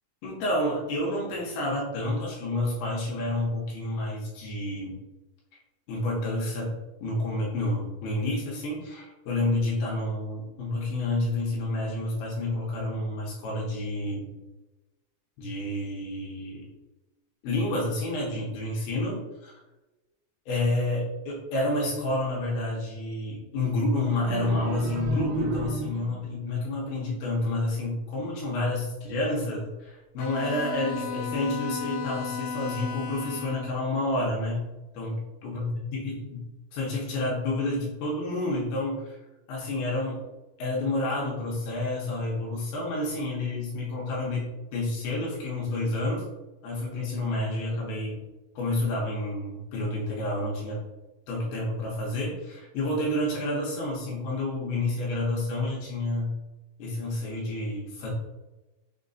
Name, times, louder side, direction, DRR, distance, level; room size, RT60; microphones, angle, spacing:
voice 1, 0.2-5.0 5.9-14.3 15.4-16.7 17.4-19.6 20.5-34.7 34.9-36.4 36.7-39.2 39.5-40.2 40.6-46.2 46.6-48.2 48.6-50.8 51.3-56.4 56.8-58.1, left 2 dB, 75° left, -4 dB, 2.6 m, -29 dB
sound 1, 24.2-26.3, right 3 dB, 75° right, 2.5 m, -32 dB
Bowed string instrument, 30.2-33.8, left 6 dB, 90° left, 2.9 m, -35 dB
6.4 x 2.9 x 2.6 m, 1.1 s
omnidirectional pair, 5.0 m